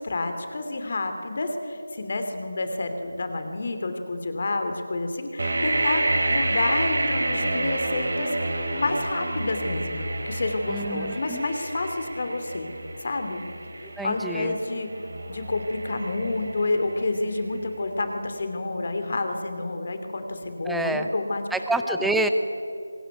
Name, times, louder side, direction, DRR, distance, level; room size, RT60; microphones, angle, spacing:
voice 1, 0.0-12.7 13.0-13.4 13.8-14.9 15.3-21.4 21.9-22.1, left 2 dB, 45° left, 6 dB, 2.7 m, -29 dB
sound 1, 5.4-17.2, right 2 dB, 60° right, 4.1 m, -29 dB
voice 2, 10.7-11.4 14.0-14.6 20.6-21.1 21.5-22.3, right 2 dB, ahead, 7 dB, 0.8 m, -27 dB
23.0 x 20.5 x 9.6 m, 2.8 s
figure-of-eight pair, 170°, 0 cm